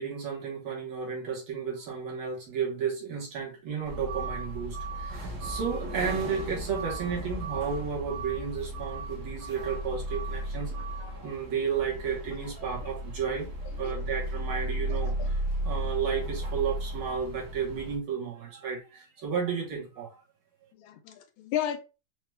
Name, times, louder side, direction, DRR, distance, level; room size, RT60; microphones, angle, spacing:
voice 1, 0.0-10.7 11.2-13.5 13.8-20.2, right 6 dB, 80° right, 2.1 m, -33 dB
sound 1, 3.8-18.0, right 1 dB, 55° right, 1.3 m, -35 dB
voice 2, 11.0-11.3 13.2-13.3 13.8-13.9 15.2-15.3 20.8-21.8, left 10 dB, 80° left, 1.5 m, -34 dB
4.8 x 2.3 x 3.2 m
omnidirectional pair, 2.2 m